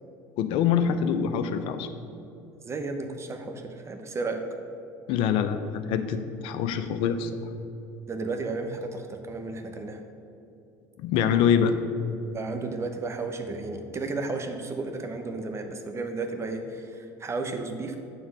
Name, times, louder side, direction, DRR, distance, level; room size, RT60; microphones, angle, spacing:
voice 1, 0.4-1.9 5.1-7.3 11.0-11.8, left 8 dB, 65° left, 10 dB, 0.6 m, -25 dB
voice 2, 2.6-4.4 8.1-10.0 12.3-18.0, right 3 dB, 30° right, 5 dB, 0.9 m, -33 dB
8.0 x 3.8 x 6.3 m, 2.7 s
supercardioid pair, 85°, 10 cm